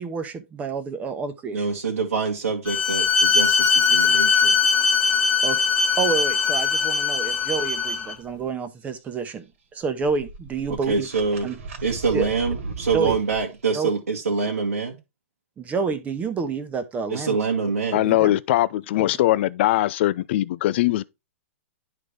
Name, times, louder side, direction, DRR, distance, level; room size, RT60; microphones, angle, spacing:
voice 1, 0.0-1.7 5.4-5.6 6.0-9.4 9.7-11.1 11.4-11.6 12.1-12.3 12.9-13.2 13.7-13.9 15.6-17.4 18.0-18.3, right 5 dB, 20° right, 0.9 m, -28 dB
voice 2, 1.5-4.5 10.7-11.5 11.8-15.0 17.1-18.0, right 4 dB, 85° right, 1.7 m, -25 dB
Bowed string instrument, 2.7-8.2, left 5 dB, 15° left, 1.2 m, -20 dB
sound 1, 9.8-13.4, right 3 dB, 65° right, 1.8 m, -35 dB
voice 3, 17.9-21.0, left 15 dB, 50° left, 0.4 m, -21 dB
10.5 x 3.9 x 3.3 m
hypercardioid pair, 120°, 8 cm